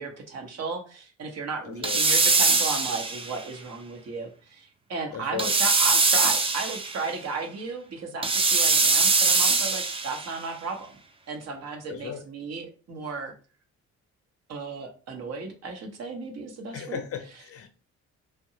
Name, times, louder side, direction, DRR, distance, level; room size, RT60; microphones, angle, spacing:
voice 1, 0.0-11.0 11.3-13.3 14.5-17.0 17.3-17.4, right 4 dB, 60° right, 0.9 m, -35 dB
voice 2, 1.7-2.0 5.1-5.5 11.9-12.2 16.7-17.7, left 9 dB, 50° left, 0.5 m, -36 dB
sound 1, 1.8-3.4 5.4-7.0 8.2-10.3, right 3 dB, 20° right, 0.4 m, -22 dB
2.7 x 2.2 x 2.7 m
cardioid pair, 90°, 30 cm